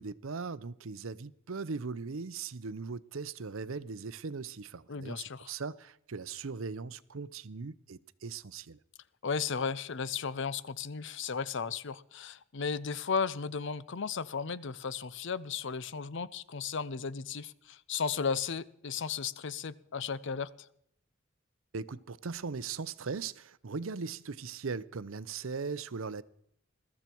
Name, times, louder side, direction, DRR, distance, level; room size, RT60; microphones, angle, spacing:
voice 1, 0.0-8.8 21.7-26.2, right 4 dB, 75° right, 0.7 m, -39 dB
voice 2, 4.9-5.5 9.2-20.7, left 5 dB, 60° left, 0.7 m, -35 dB
21.5 x 13.5 x 4.6 m
head